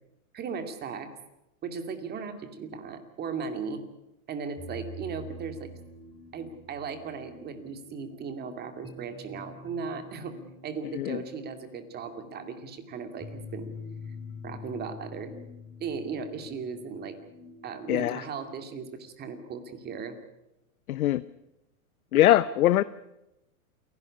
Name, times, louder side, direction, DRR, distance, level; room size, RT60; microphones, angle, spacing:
voice 1, 0.3-1.1 1.6-3.8 4.3-5.7 6.3-10.4 10.6-13.7 14.4-15.3 15.8-17.2 17.6-20.2 22.1-22.4, right 5 dB, 20° right, 8 dB, 2.4 m, -37 dB
sound 1, 4.6-20.1, left 2 dB, 5° left, 2.9 m, -46 dB
voice 2, 17.9-18.2 20.9-21.2 22.1-22.8, left 14 dB, 80° left, 16 dB, 0.8 m, -22 dB
28.5 x 12.0 x 9.8 m, 0.91 s
supercardioid pair, 145°, 43 cm